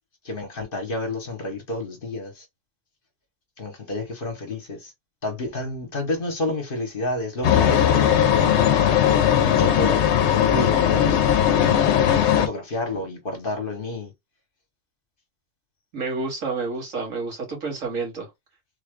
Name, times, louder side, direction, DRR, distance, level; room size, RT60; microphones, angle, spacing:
voice 1, 0.2-2.4 3.6-4.9 5.2-8.6 9.4-11.2 12.3-14.1, left 2 dB, 45° left, 1.1 m, -30 dB
sound 1, 7.4-12.5, left 9 dB, 65° left, 0.9 m, -18 dB
voice 2, 15.9-18.3, right 4 dB, 85° right, 1.9 m, -29 dB
3.7 x 2.3 x 3.5 m
omnidirectional pair, 1.3 m